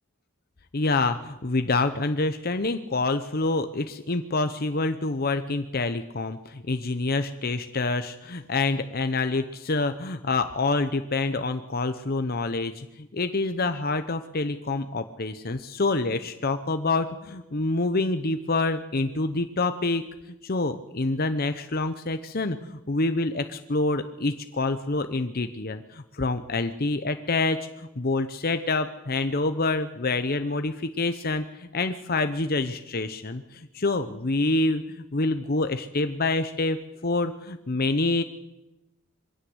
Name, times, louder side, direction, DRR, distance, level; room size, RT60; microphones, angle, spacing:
voice 1, 0.7-20.0 20.4-36.8 37.0-38.2, left 3 dB, 45° left, 9 dB, 0.9 m, -27 dB
22.5 x 16.5 x 8.0 m, 0.97 s
head